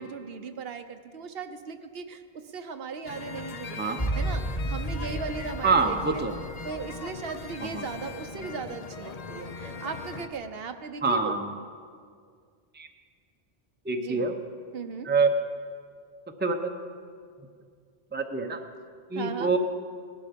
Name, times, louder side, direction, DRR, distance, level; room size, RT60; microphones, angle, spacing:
voice 1, 0.0-6.2 6.6-11.4 14.0-14.3 14.7-15.1 19.2-19.5, right 5 dB, 70° right, 8 dB, 1.0 m, -38 dB
sound 1, 3.1-10.3, left 4 dB, 45° left, 0.8 m, -40 dB
sound 2, 4.0-8.2 8.5-8.6, right 1 dB, 25° left, 1.7 m, -33 dB
voice 2, 5.6-6.3 7.7-7.9 11.0-11.5 12.7-12.9 13.8-14.4 15.0-15.3 16.4-16.7 18.1-18.6 19.1-19.6, right 4 dB, 10° right, 5 dB, 0.8 m, -25 dB
18.0 x 12.0 x 5.2 m, 2.1 s
omnidirectional pair, 1.0 m